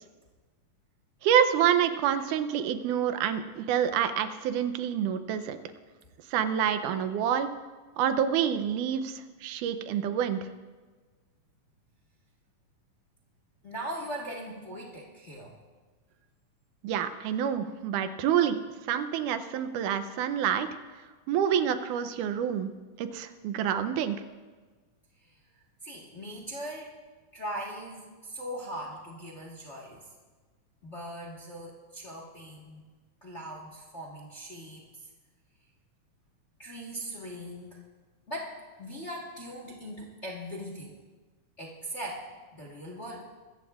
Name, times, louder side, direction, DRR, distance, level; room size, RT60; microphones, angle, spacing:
voice 1, 1.2-5.6 6.3-7.5 8.0-10.5 16.8-18.6 18.9-20.7 21.3-22.7 23.0-24.2, right 9 dB, 85° right, 10 dB, 2.2 m, -27 dB
voice 2, 13.6-15.6 25.2-25.4 25.8-26.9 27.3-30.1 30.8-32.8 33.2-35.1 36.6-37.8 38.3-41.0 41.6-42.3 42.5-43.2, right 1 dB, 35° left, -2 dB, 1.1 m, -40 dB
23.5 x 14.0 x 2.4 m, 1.4 s
omnidirectional pair, 3.6 m